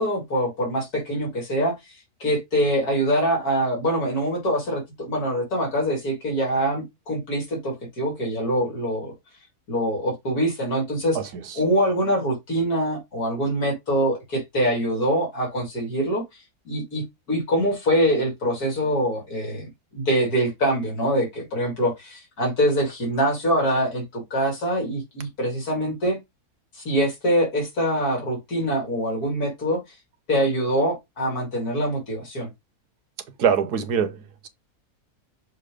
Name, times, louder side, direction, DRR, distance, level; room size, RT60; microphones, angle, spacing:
voice 1, 0.0-9.1 9.7-11.2 11.6-16.2 16.7-26.2 26.7-29.8 30.3-32.5, equal, 75° left, 3.0 m, -24 dB
voice 2, 11.1-11.6 33.4-34.5, right 7 dB, 80° right, 1.5 m, -24 dB
6.6 x 2.8 x 5.1 m
omnidirectional pair, 1.6 m